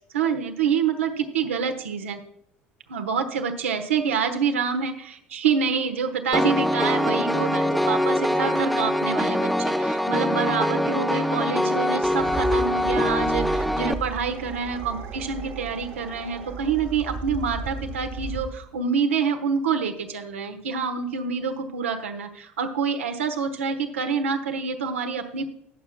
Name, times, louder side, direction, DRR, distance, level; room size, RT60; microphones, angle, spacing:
voice 1, 0.1-2.2 2.9-25.5, right 6 dB, 75° right, 5 dB, 1.1 m, -27 dB
Piano, 6.3-13.9, equal, ahead, 0.7 m, -23 dB
sound 1, 11.9-18.7, right 4 dB, 55° right, 1.9 m, -35 dB
19.0 x 7.0 x 2.2 m, 0.76 s
figure-of-eight pair, 70°, 7 cm